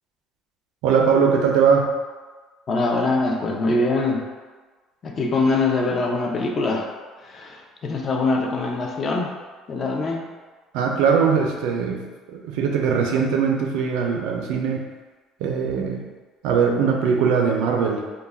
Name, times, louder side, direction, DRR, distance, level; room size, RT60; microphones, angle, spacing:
voice 1, 0.8-1.9 10.7-12.0 12.3-14.9 15.4-16.0 16.4-18.0, right 6 dB, 85° right, 2 dB, 0.4 m, -20 dB
voice 2, 2.7-4.3 5.0-6.9 7.2-9.3 9.7-10.3, left 3 dB, 30° left, 2 dB, 0.3 m, -23 dB
2.3 x 2.1 x 3.3 m, 1.4 s
cardioid pair, 155°, 0 cm